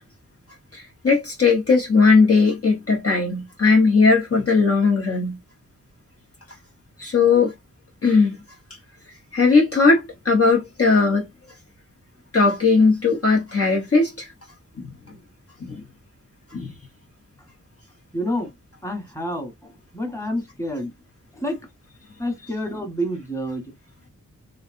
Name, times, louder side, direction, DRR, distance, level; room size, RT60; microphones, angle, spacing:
voice 1, 0.7-5.4 7.0-7.5 8.0-8.4 9.3-11.3 12.3-14.3 14.8-14.9 15.6-15.8 16.5-16.7, left 4 dB, 45° left, 1.0 m, -18 dB
voice 2, 18.1-18.5 18.8-20.9 21.3-21.7 22.2-23.7, equal, 10° left, 1.2 m, -28 dB
3.1 x 2.7 x 2.5 m
wide cardioid pair, 85°, 33 cm